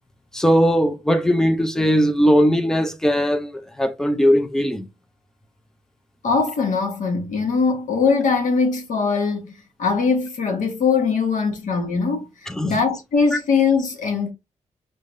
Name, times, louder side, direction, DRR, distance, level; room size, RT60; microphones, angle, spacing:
voice 1, 0.3-3.5 3.8-4.9 12.5-12.7, equal, 5° left, 0.5 m, -19 dB
voice 2, 6.2-9.5 9.8-12.3 12.6-14.3, left 5 dB, 80° left, 1.3 m, -21 dB
5.3 x 3.2 x 2.6 m
wide cardioid pair, 150°, 13 cm